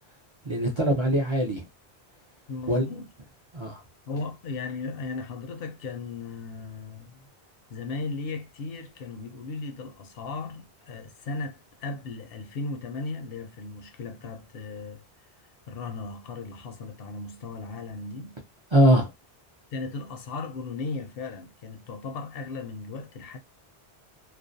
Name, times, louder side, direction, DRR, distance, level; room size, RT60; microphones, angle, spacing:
voice 1, 0.4-1.7 2.7-2.8 3.5-3.8 18.7-19.1, right 1 dB, 45° right, 0.4 m, -22 dB
voice 2, 2.5-3.1 4.1-7.2 7.7-15.0 15.7-18.4 19.7-23.4, left 3 dB, 70° left, 0.7 m, -36 dB
2.4 x 2.1 x 2.5 m
omnidirectional pair, 1.1 m